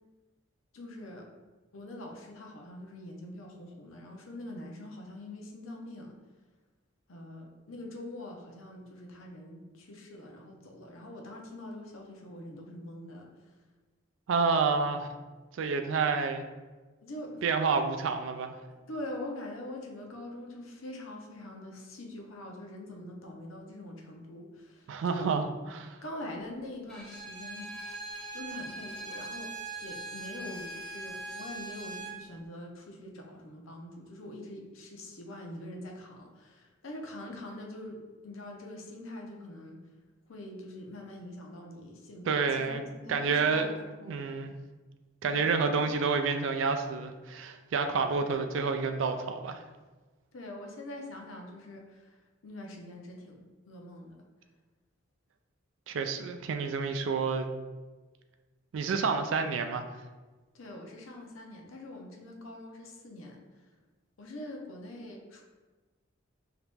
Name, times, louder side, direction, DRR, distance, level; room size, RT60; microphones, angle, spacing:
voice 1, 0.7-1.3 1.7-6.1 7.1-13.3 17.0-17.4 18.7-25.3 26.0-27.7 28.3-29.5 29.8-38.0 38.2-39.8 40.3-44.2 45.3-45.8 50.3-52.2 52.4-54.2 60.5-63.4 64.2-65.4, left 1 dB, 80° left, 1 dB, 0.7 m, -44 dB
voice 2, 14.3-15.1 15.5-16.5 17.4-18.5 24.9-26.0 42.3-42.8 43.1-43.7 44.1-44.6 45.2-49.6 55.9-57.5 58.7-59.8, right 5 dB, 65° right, 7 dB, 0.3 m, -29 dB
Bowed string instrument, 26.9-32.2, right 2 dB, 5° left, 0.5 m, -41 dB
2.9 x 2.9 x 3.4 m, 1.3 s
head